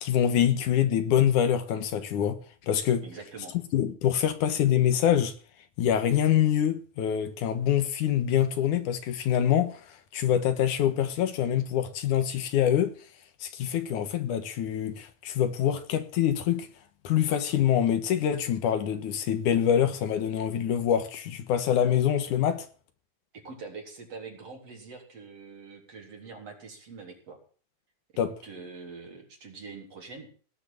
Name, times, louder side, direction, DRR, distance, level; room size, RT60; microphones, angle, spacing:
voice 1, 0.0-2.4 2.7-3.0 3.7-5.3 5.8-9.8 10.1-12.9 13.4-16.7 17.0-22.7 28.2-28.3, left 10 dB, 90° left, 2.9 m, -25 dB
voice 2, 3.0-3.6 23.3-27.4 28.4-30.3, right 4 dB, 55° right, 4.8 m, -44 dB
18.5 x 6.9 x 8.7 m
omnidirectional pair, 3.4 m